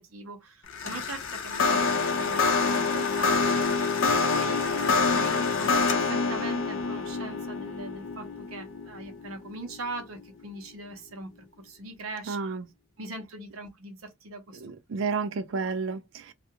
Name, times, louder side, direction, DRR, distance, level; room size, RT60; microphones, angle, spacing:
voice 1, 0.0-11.3 11.6-12.4 13.0-14.6, right 2 dB, 85° right, 0.8 m, -41 dB
sound 1, 0.7-10.0, left 4 dB, 65° left, 0.5 m, -26 dB
voice 2, 12.3-12.7 14.6-16.3, right 4 dB, 60° right, 0.4 m, -31 dB
2.4 x 2.2 x 2.8 m
head